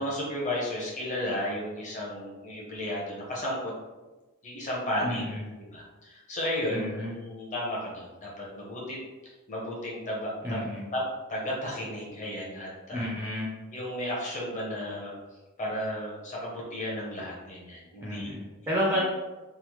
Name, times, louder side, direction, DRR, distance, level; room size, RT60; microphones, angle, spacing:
voice 1, 0.0-3.7 4.4-5.2 5.6-9.0 9.5-10.7 10.9-11.0 11.3-13.1 13.7-15.1 15.6-18.3, left 1 dB, 35° left, -4 dB, 0.7 m, -33 dB
voice 2, 5.0-5.4 6.7-7.1 10.4-10.8 12.9-13.5 18.0-19.0, equal, 10° right, -4 dB, 0.4 m, -31 dB
3.1 x 2.0 x 3.0 m, 1.2 s
head